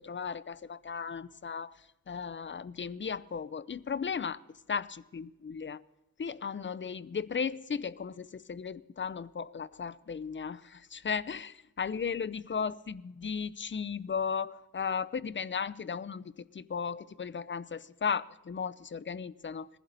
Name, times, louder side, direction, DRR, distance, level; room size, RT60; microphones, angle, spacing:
voice 1, 0.0-1.8 2.1-4.4 4.7-5.8 6.2-16.2 16.5-19.7, left 6 dB, 30° left, 0.5 m, -35 dB
21.5 x 15.5 x 4.0 m
wide cardioid pair, 130°, 37 cm